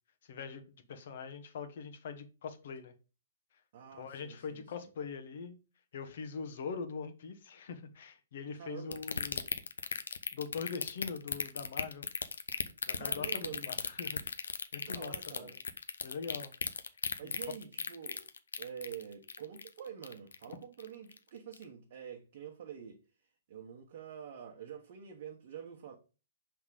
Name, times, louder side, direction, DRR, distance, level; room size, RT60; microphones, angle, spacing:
voice 1, 0.2-2.9 3.9-5.6 5.9-9.5 10.3-12.1 12.9-15.5 16.0-16.5 17.2-17.3, left 5 dB, 60° left, 1.1 m, -42 dB
voice 2, 3.7-4.9 8.6-9.0 12.9-13.7 14.8-15.5 17.2-18.3 18.6-23.0 23.5-26.0, right 8 dB, 50° right, 1.1 m, -47 dB
sound 1, 8.9-20.5 20.8-21.2 21.5-21.6, left 5 dB, 80° left, 0.6 m, -36 dB
5.6 x 3.5 x 4.9 m
hypercardioid pair, 125°, 0 cm